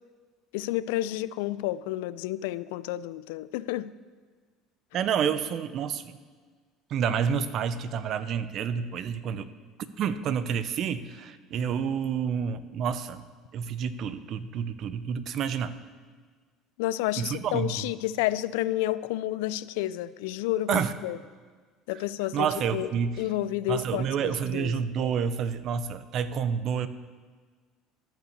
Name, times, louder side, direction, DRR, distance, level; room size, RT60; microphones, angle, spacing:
voice 1, 0.5-3.9 16.8-21.2 21.9-22.9 23.2-24.7, left 15 dB, 85° left, 17 dB, 0.3 m, -30 dB
voice 2, 4.9-6.2 6.9-9.5 10.0-13.2 13.5-15.8 17.2-17.9 20.7-20.9 22.3-23.3 23.7-26.9, right 7 dB, 55° right, 13 dB, 0.6 m, -29 dB
12.0 x 5.5 x 6.5 m, 1.5 s
supercardioid pair, 100°, 0 cm